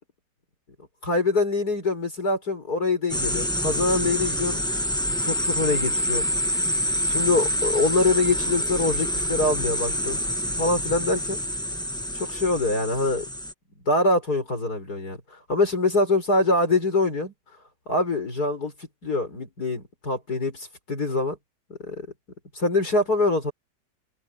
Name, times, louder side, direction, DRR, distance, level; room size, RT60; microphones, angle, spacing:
voice 1, 1.0-4.6 5.1-6.3 7.1-10.2 10.6-11.4 12.1-13.3 13.9-17.3 17.9-18.7 19.0-21.4 21.8-22.1 22.5-23.5, left 2 dB, 55° left, 6.6 m, -24 dB
sound 1, 3.1-13.5, equal, 5° left, 1.1 m, -27 dB
omnidirectional pair, 2.0 m